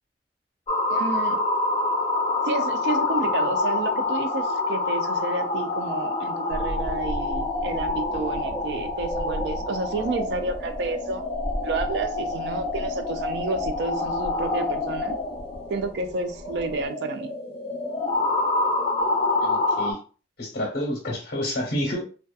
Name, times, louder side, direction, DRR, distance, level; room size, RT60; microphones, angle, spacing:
sound 1, 0.7-19.9, left 2 dB, 35° left, 0.4 m, -27 dB
voice 1, 0.9-1.4 2.5-11.2 11.6-15.2 15.7-17.3, right 3 dB, 70° right, 8 dB, 0.4 m, -30 dB
sound 2, 6.5-16.9, right 1 dB, 10° right, 0.8 m, -36 dB
voice 2, 19.4-20.0 20.4-22.0, left 1 dB, 60° left, -1 dB, 0.9 m, -29 dB
2.6 x 2.2 x 2.3 m, 0.37 s
head